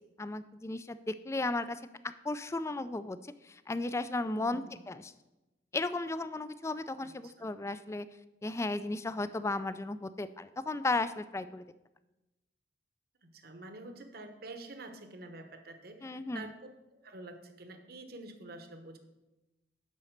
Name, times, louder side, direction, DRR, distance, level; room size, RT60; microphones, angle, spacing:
voice 1, 0.2-1.8 2.2-3.2 3.5-5.0 5.7-8.1 8.4-11.6 16.0-16.4, left 2 dB, 15° left, 13 dB, 0.3 m, -35 dB
voice 2, 4.3-4.8 7.0-7.5 13.2-19.0, right 2 dB, 60° right, 7 dB, 1.0 m, -48 dB
10.5 x 4.2 x 6.5 m, 1.0 s
head